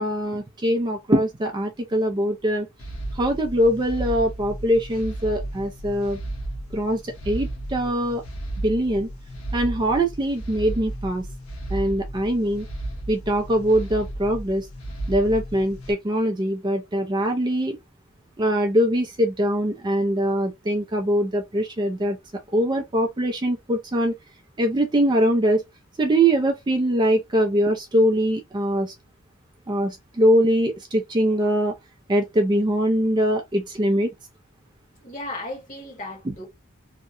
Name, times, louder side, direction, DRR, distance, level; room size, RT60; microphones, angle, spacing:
voice 1, 0.0-2.7 3.1-6.2 6.7-8.2 8.6-9.1 9.5-11.2 11.7-12.7 13.1-14.7 15.1-17.8 18.4-22.2 22.5-24.1 24.6-25.6 26.0-28.9 29.7-31.7 32.1-34.1, right 1 dB, 20° right, 0.4 m, -22 dB
sound 1, 2.8-15.9, right 1 dB, 90° left, 0.8 m, -34 dB
voice 2, 35.0-36.5, left 2 dB, 35° left, 1.3 m, -35 dB
2.7 x 2.1 x 2.5 m
head